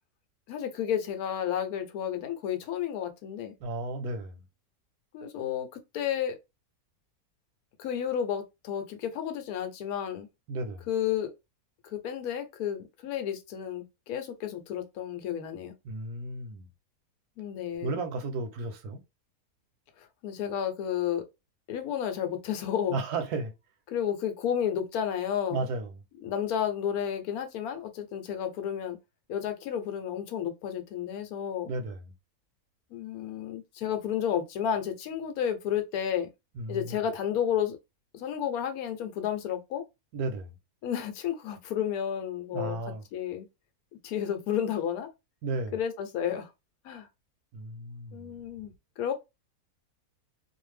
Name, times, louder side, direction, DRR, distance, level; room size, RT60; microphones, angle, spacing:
voice 1, 0.5-3.5 5.1-5.7 5.9-6.4 7.8-10.3 10.9-11.3 11.9-15.7 17.4-18.0 20.0-21.2 21.7-23.0 23.9-25.7 26.2-29.0 29.3-31.7 32.9-36.3 36.7-37.8 38.1-39.8 40.8-42.8 43.1-43.5 44.0-45.1 45.7-46.5 46.8-47.1 48.1-48.7 49.0-49.1, left 9 dB, 75° left, 1.1 m, -31 dB
voice 2, 3.6-4.4 10.5-10.9 15.8-16.7 17.8-19.0 22.9-23.5 25.5-25.9 31.7-32.1 36.6-37.0 40.1-40.5 42.5-43.0 45.4-45.7 47.5-48.3, right 3 dB, 90° right, 1.2 m, -34 dB
2.6 x 2.3 x 3.1 m
omnidirectional pair, 1.6 m